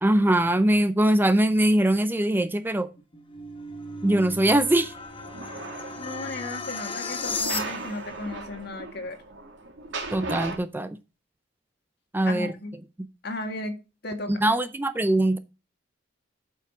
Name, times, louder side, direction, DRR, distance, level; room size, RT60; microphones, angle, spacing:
voice 1, 0.0-2.9 4.0-4.9 10.1-11.0 12.1-12.5 14.3-15.4, right 1 dB, 10° right, 0.4 m, -22 dB
sound 1, 2.9-8.1, left 3 dB, 30° left, 1.1 m, -35 dB
sound 2, 4.9-6.3 7.2-10.6, right 3 dB, 80° right, 2.3 m, -37 dB
voice 2, 6.0-9.2 12.3-12.7 13.2-13.8 14.0-14.3, left 2 dB, 60° left, 1.7 m, -34 dB
8.1 x 5.8 x 4.7 m
head